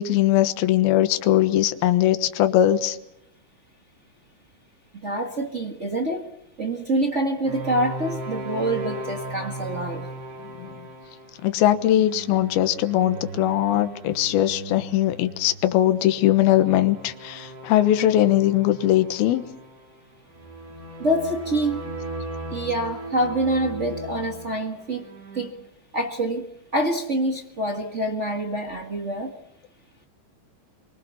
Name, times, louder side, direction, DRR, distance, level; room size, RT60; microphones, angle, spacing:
voice 1, 0.0-3.0 10.6-10.7 11.4-19.4, left 13 dB, 75° left, 10 dB, 3.0 m, -20 dB
voice 2, 4.9-6.3 6.6-10.1 21.0-21.9 22.5-25.1 25.3-25.5 25.9-26.5 26.7-29.3, right 1 dB, 60° right, 2 dB, 0.7 m, -26 dB
sound 1, 7.4-25.5, right 1 dB, 80° right, 5.3 m, -37 dB
25.0 x 24.5 x 7.0 m, 0.79 s
omnidirectional pair, 4.5 m